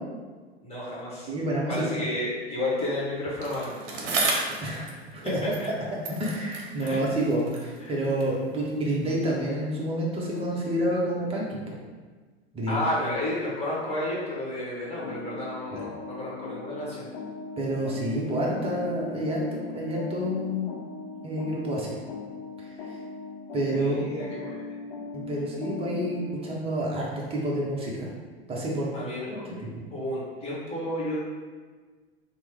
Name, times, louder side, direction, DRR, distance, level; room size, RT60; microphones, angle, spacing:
voice 1, 0.6-1.3 1.7-3.7 6.8-7.0 7.8-7.9 12.7-17.1 23.7-24.5 28.9-29.4 29.9-31.2, left 1 dB, 20° left, -6 dB, 1.2 m, -31 dB
voice 2, 1.3-1.9 4.6-4.9 5.1-5.4 6.1-11.8 12.5-12.8 15.7-15.8 17.6-19.4 19.7-20.7 21.2-21.9 22.8-23.0 23.5-24.0 25.1-28.1 28.5-28.9 29.3-29.7, right 1 dB, 20° right, -4 dB, 0.8 m, -29 dB
Bicycle, 3.4-5.8 6.0-8.4 9.2-9.3, right 3 dB, 60° right, 0.8 m, -33 dB
sound 1, 15.0-26.3, left 3 dB, 65° left, 0.7 m, -39 dB
2.9 x 2.1 x 3.5 m, 1.4 s
hypercardioid pair, 95°, 32 cm